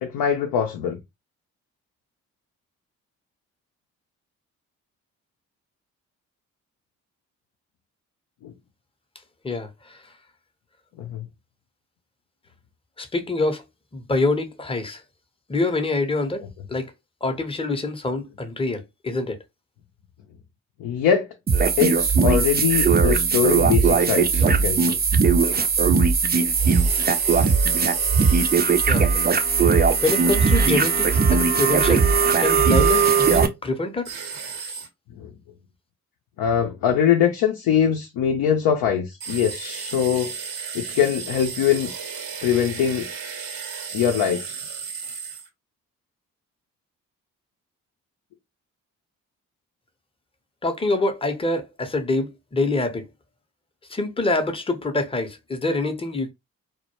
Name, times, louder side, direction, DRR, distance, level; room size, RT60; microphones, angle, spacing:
voice 1, 0.0-1.0 8.4-8.5 11.0-11.3 20.8-21.3 21.8-25.0 35.2-35.3 36.4-40.3 40.7-41.9 42.4-43.1 43.9-44.6, left 8 dB, 65° left, 0.6 m, -22 dB
voice 2, 9.4-10.0 13.0-13.6 13.9-15.0 15.5-16.9 17.2-19.4 28.8-29.5 30.0-32.1 32.4-34.1 50.6-53.1 53.9-56.3, left 2 dB, 15° left, 0.7 m, -25 dB
sound 1, 21.5-33.5, right 5 dB, 25° right, 0.5 m, -19 dB
sound 2, 26.5-28.9 32.6-33.4 34.0-34.9 39.2-45.5, right 6 dB, 65° right, 0.8 m, -34 dB
2.1 x 2.1 x 2.9 m
hypercardioid pair, 45°, 38 cm